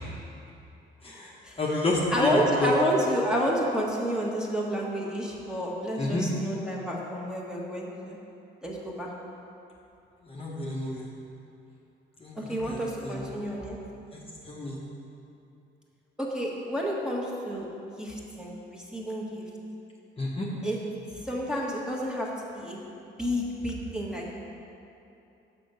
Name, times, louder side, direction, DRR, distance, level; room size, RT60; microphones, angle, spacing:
voice 1, 1.6-2.7 6.0-6.3 10.2-11.1 12.2-13.3 14.1-14.2 14.5-14.8 20.2-20.5, left 2 dB, 30° left, -4 dB, 1.0 m, -30 dB
voice 2, 2.1-8.2 8.6-9.1 12.3-13.8 16.2-17.7 18.0-19.4 20.6-20.8 21.2-22.3 22.5-22.8 23.2-24.3, equal, 5° right, -3 dB, 1.3 m, -30 dB
6.1 x 5.9 x 5.5 m, 2.7 s
cardioid pair, 90°, 20 cm